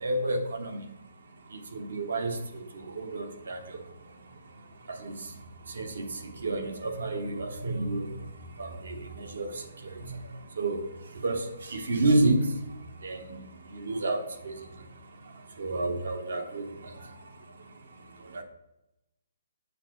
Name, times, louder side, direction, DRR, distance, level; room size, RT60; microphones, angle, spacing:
voice 1, 0.0-0.8 1.7-2.4 2.9-3.6 5.0-5.1 5.8-6.0 6.4-8.1 8.6-9.5 10.0-10.1 10.6-10.8 11.2-11.4 11.7-12.5 13.0-13.2 13.8-14.5 15.6-16.6 18.3-18.4, right 2 dB, 70° right, 6 dB, 1.1 m, -29 dB
7.2 x 4.6 x 3.8 m, 0.90 s
hypercardioid pair, 165°, 0 cm